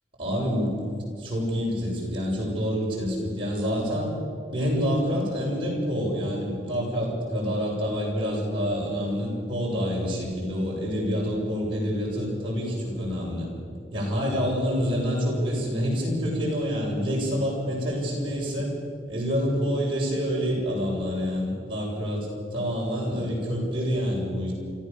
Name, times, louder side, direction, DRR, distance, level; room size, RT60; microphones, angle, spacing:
voice 1, 0.2-0.7 1.2-4.1 4.5-13.5 13.9-18.7 19.1-24.5, equal, 25° right, -5 dB, 6.8 m, -27 dB
28.0 x 14.0 x 7.1 m, 2.4 s
head